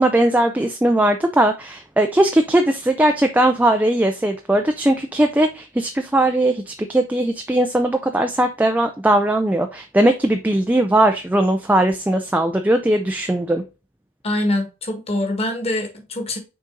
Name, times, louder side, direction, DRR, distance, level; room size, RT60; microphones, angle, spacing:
voice 1, 0.0-13.6, right 1 dB, 5° right, 0.3 m, -19 dB
voice 2, 14.2-16.4, left 1 dB, 25° left, 1.5 m, -24 dB
6.2 x 4.0 x 3.8 m
head